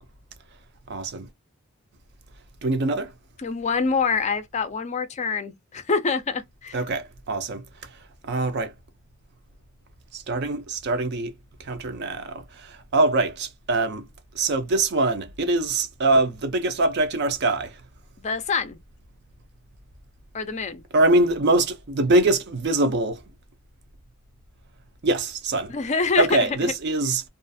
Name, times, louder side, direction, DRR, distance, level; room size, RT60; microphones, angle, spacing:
voice 1, 0.9-1.3 2.6-3.1 6.7-7.6 8.2-8.7 10.1-11.3 11.6-14.0 14.3-17.7 20.9-23.2 25.0-25.7 26.2-27.2, right 2 dB, 50° right, 0.5 m, -23 dB
voice 2, 3.4-6.8 18.2-18.8 20.3-20.8 25.7-26.7, left 4 dB, 35° left, 0.4 m, -26 dB
2.4 x 2.3 x 2.5 m
head